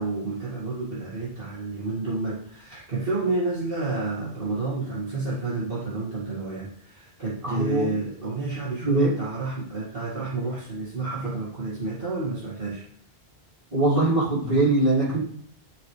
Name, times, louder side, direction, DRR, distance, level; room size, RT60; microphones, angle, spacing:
voice 1, 0.0-12.9, right 3 dB, 60° right, -8 dB, 2.4 m, -30 dB
voice 2, 7.4-7.9 8.8-9.1 13.7-15.3, right 2 dB, 30° right, -6 dB, 3.3 m, -22 dB
11.5 x 4.8 x 3.2 m, 0.62 s
omnidirectional pair, 1.1 m